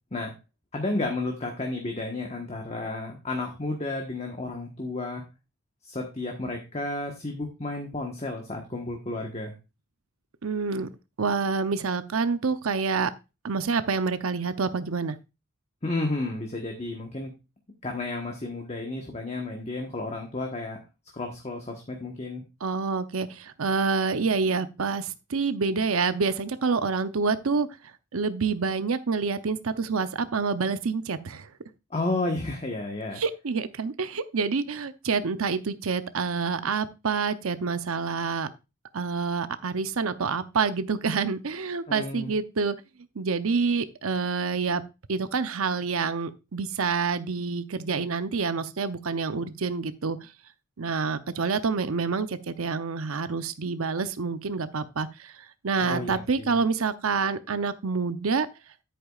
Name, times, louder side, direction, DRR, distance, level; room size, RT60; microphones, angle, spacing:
voice 1, 0.7-5.2 5.8-9.5 15.8-17.3 17.8-20.8 21.1-22.4 31.9-33.2 41.9-42.4 55.8-56.6, left 2 dB, 30° left, 2 dB, 1.3 m, -32 dB
voice 2, 10.4-10.9 11.2-13.1 13.4-15.2 22.6-27.7 28.1-31.5 33.2-38.5 38.9-42.8 43.2-44.8 45.1-50.3 50.8-58.5, right 4 dB, 90° right, 11 dB, 0.7 m, -27 dB
10.0 x 8.6 x 2.4 m, 0.27 s
head